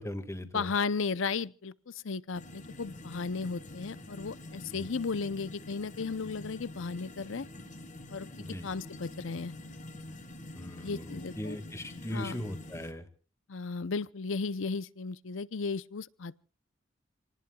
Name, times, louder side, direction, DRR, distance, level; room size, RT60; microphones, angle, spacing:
voice 1, 0.0-0.7 4.7-4.9 8.4-8.7 10.5-13.0, left 1 dB, 15° left, 1.9 m, -39 dB
voice 2, 0.5-7.5 8.1-9.5 10.8-11.6 12.1-12.4 13.5-16.4, left 4 dB, 70° left, 0.7 m, -35 dB
sound 1, 2.3-12.9, left 1 dB, 40° left, 1.7 m, -46 dB
28.5 x 19.0 x 2.3 m
head